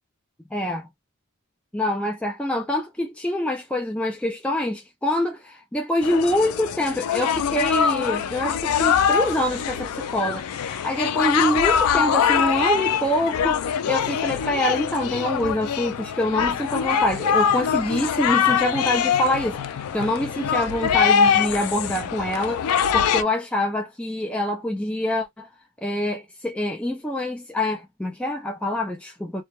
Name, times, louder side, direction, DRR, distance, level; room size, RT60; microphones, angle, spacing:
voice 1, 0.5-0.9 1.7-19.6 19.9-25.5 25.8-29.4, left 1 dB, 5° left, 0.4 m, -25 dB
sound 1, 6.0-23.2, left 7 dB, 80° left, 0.3 m, -23 dB
2.2 x 2.1 x 2.9 m
head